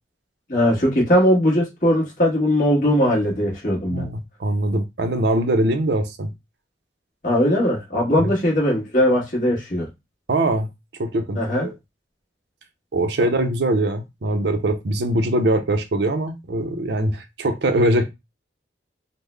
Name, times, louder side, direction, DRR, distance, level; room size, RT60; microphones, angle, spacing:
voice 1, 0.5-4.1 7.2-9.9 11.3-11.7, equal, 45° left, 1.3 m, -19 dB
voice 2, 3.9-6.3 8.2-8.3 10.3-10.7 11.0-11.7 12.9-18.1, right 1 dB, 60° right, 0.5 m, -22 dB
3.6 x 2.0 x 3.2 m
head